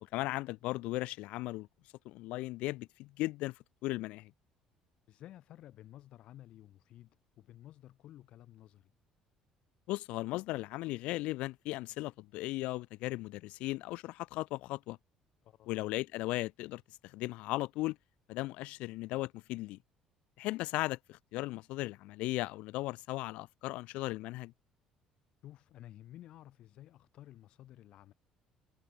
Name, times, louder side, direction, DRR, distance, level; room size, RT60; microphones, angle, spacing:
voice 1, 0.0-1.7 2.0-4.3 9.9-15.0 15.7-18.0 18.3-19.8 20.4-24.5, left 19 dB, 80° left, 1.7 m, -37 dB
voice 2, 5.1-8.9 15.4-15.7 25.4-28.1, left 13 dB, 55° left, 4.6 m, -53 dB
cardioid pair, 150°, 2 cm